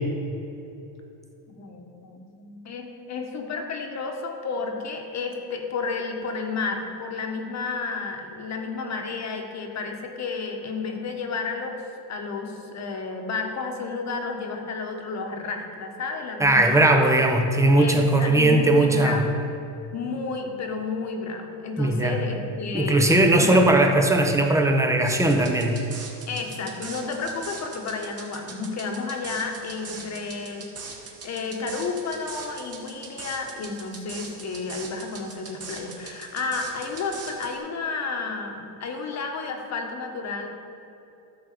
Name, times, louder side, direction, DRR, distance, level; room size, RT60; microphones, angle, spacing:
voice 1, 1.5-11.8 12.1-16.9 17.8-19.4 19.9-23.6 26.3-30.7 31.2-40.5, left 4 dB, 35° left, 3 dB, 1.5 m, -32 dB
voice 2, 16.4-19.3 21.8-22.2 22.7-25.8, right 1 dB, 5° right, 4 dB, 1.0 m, -19 dB
sound 1, 25.1-37.6, right 4 dB, 30° right, 1.9 m, -41 dB
13.0 x 4.5 x 6.8 m, 2.9 s
supercardioid pair, 115°, 46 cm